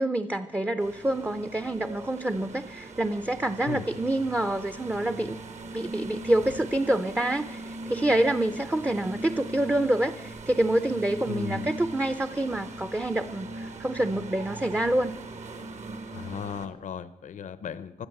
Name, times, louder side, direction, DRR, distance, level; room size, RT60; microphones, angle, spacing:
voice 1, 0.0-5.4 5.7-7.6 7.9-15.1, right 1 dB, 10° right, 10 dB, 0.5 m, -27 dB
sound 1, 0.8-16.7, right 2 dB, 60° right, 1.4 m, -40 dB
voice 2, 11.3-11.7 16.1-18.1, left 7 dB, 70° left, 14 dB, 0.7 m, -36 dB
17.0 x 12.0 x 6.6 m, 0.96 s
wide cardioid pair, 125°, 13 cm